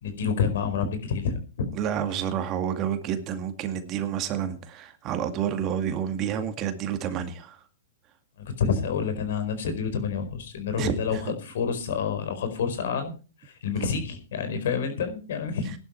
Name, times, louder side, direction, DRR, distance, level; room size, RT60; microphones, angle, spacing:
voice 1, 0.0-1.7 8.6-13.1 13.4-15.7, left 6 dB, 70° left, 9 dB, 4.6 m, -28 dB
voice 2, 1.7-7.6 10.8-11.3 13.7-14.0, right 9 dB, 30° right, 8 dB, 2.0 m, -29 dB
16.0 x 11.5 x 4.5 m, 0.36 s
hypercardioid pair, 140°, 0 cm